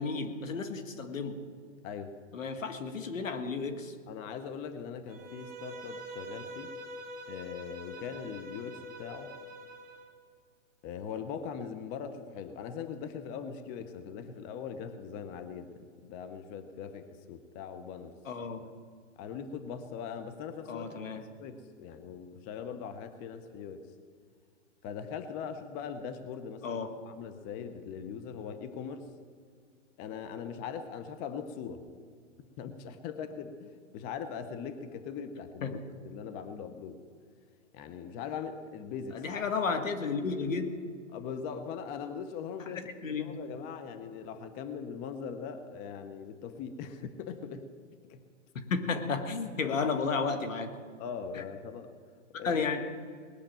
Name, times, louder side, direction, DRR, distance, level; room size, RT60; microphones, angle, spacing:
voice 1, 0.0-1.4 2.3-3.9 18.3-18.7 20.7-21.3 26.6-26.9 35.6-35.7 39.1-40.8 42.7-43.4 48.7-50.7 51.4-51.5 52.4-52.8, left 4 dB, 85° left, 8 dB, 1.8 m, -32 dB
voice 2, 4.1-6.7 7.3-9.3 10.8-18.2 19.2-23.9 24.8-29.1 30.0-31.8 32.6-35.8 36.0-37.0 37.7-39.2 41.1-42.8 43.2-47.7 48.1-48.2 49.7-49.8 51.0-51.9 52.3-52.6, left 7 dB, 20° left, 9 dB, 0.7 m, -41 dB
Bowed string instrument, 5.1-10.1, equal, 20° right, 2.3 m, -45 dB
19.5 x 6.6 x 8.9 m, 2.1 s
hypercardioid pair, 145°, 38 cm